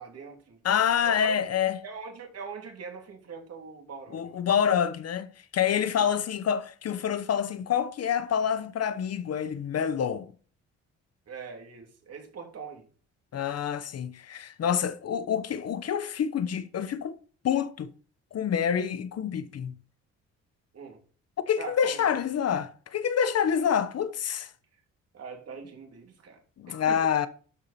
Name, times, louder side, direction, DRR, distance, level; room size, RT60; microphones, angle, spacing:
voice 1, 0.0-0.6 1.0-1.4 1.8-4.4 6.0-6.1 11.3-12.9 20.7-21.0 21.6-22.1 24.7-24.8 25.1-26.4 26.7-27.1, right 5 dB, 55° right, 3.0 m, -42 dB
voice 2, 0.6-1.8 4.1-5.3 5.5-10.3 13.3-17.2 17.4-17.9 18.3-19.7 21.5-24.5 26.6-27.3, left 8 dB, 55° left, 0.9 m, -27 dB
12.5 x 4.8 x 4.3 m
cardioid pair, 90°, 30 cm